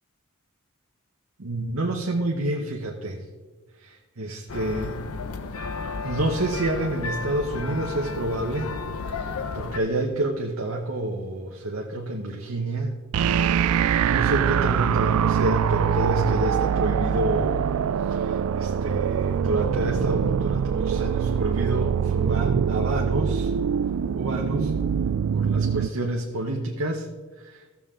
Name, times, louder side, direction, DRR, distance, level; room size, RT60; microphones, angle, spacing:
voice 1, 1.4-3.2 3.8-5.0 6.0-8.7 9.0-13.0 14.0-17.6 18.1-23.5 24.2-24.7 25.3-27.0 27.4-27.5, right 1 dB, 70° right, 0 dB, 1.0 m, -28 dB
sound 1, 4.5-9.8, left 4 dB, 85° left, 0.6 m, -33 dB
sound 2, 13.1-25.9, right 7 dB, 85° right, 0.3 m, -24 dB
15.5 x 7.2 x 3.7 m, 1.3 s
head